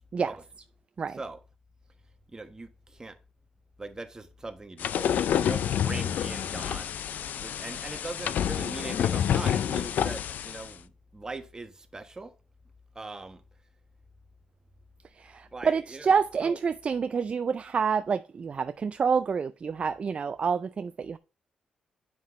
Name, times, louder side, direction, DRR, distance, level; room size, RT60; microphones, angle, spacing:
voice 1, 2.3-3.2 3.8-7.0 7.4-12.3 12.9-13.4 15.5-16.1 16.4-16.6, right 3 dB, 20° right, 1.2 m, -41 dB
sound 1, 4.8-10.7, left 9 dB, 70° left, 0.4 m, -28 dB
voice 2, 15.2-21.2, right 6 dB, 40° right, 0.3 m, -27 dB
7.5 x 5.7 x 3.1 m
cardioid pair, 85°, 3 cm